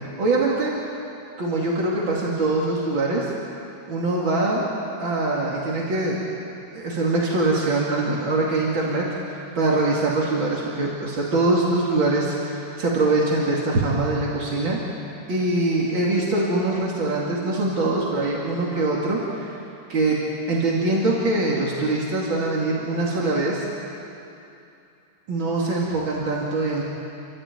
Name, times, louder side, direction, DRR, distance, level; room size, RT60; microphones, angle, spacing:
voice 1, 0.2-0.7 1.4-3.3 3.9-4.6 5.0-6.2 6.7-14.8 15.3-19.6 19.9-20.2 20.5-23.7 25.3-26.8, right 2 dB, 80° right, -4 dB, 3.2 m, -23 dB
30.0 x 13.5 x 9.2 m, 2.7 s
omnidirectional pair, 2.1 m